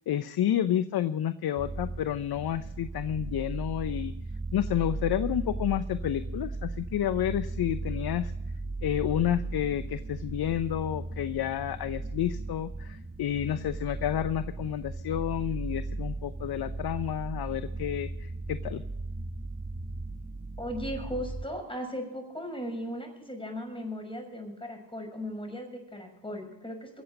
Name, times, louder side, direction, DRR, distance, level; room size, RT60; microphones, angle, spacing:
voice 1, 0.1-4.1 4.5-8.3 8.8-18.8, left 11 dB, 50° left, 13 dB, 0.8 m, -30 dB
sound 1, 1.6-21.4, right 2 dB, 20° right, 1.6 m, -36 dB
voice 2, 20.6-27.0, equal, 10° left, 3 dB, 6.3 m, -37 dB
23.0 x 8.0 x 5.2 m, 0.89 s
hypercardioid pair, 60°, 50 cm